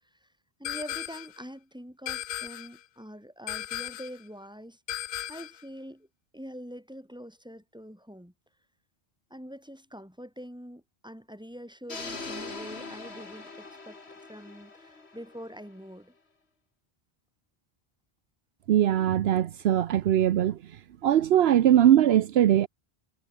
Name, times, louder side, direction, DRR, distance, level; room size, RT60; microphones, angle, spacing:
sound 1, 0.6-1.4 2.1-2.8 3.5-4.2 4.9-5.6, left 11 dB, 65° left, 0.7 m, -36 dB
voice 1, 0.6-6.1 6.3-8.3 9.3-16.1, equal, 5° right, 6.9 m, -44 dB
sound 2, 11.9-15.9, left 3 dB, 90° left, 2.9 m, -42 dB
voice 2, 18.7-20.6 21.0-22.7, right 11 dB, 75° right, 0.9 m, -21 dB
omnidirectional pair, 1.1 m